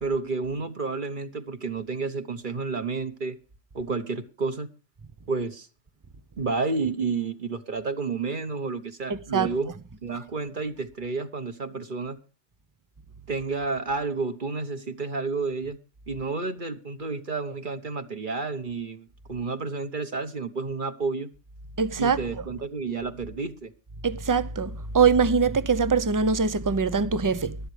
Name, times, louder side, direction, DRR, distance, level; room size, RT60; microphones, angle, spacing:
voice 1, 0.0-3.4 3.7-4.7 5.3-5.7 6.4-9.7 10.0-12.2 13.3-15.8 16.1-21.3 22.0-23.7, right 4 dB, 45° right, 1.3 m, -30 dB
voice 2, 9.1-9.5 21.8-22.5 24.0-27.6, right 5 dB, 25° right, 0.4 m, -23 dB
20.0 x 12.0 x 3.2 m
omnidirectional pair, 1.2 m